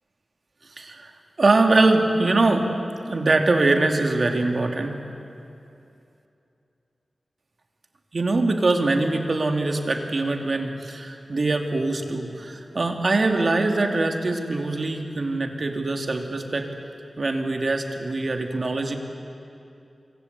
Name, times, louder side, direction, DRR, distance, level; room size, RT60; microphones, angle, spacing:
voice 1, 0.8-1.1 1.4-2.7 3.1-5.0 8.1-16.7 17.2-19.0, right 2 dB, 55° right, 4 dB, 2.6 m, -23 dB
27.0 x 24.0 x 8.2 m, 2.7 s
wide cardioid pair, 85°, 0 cm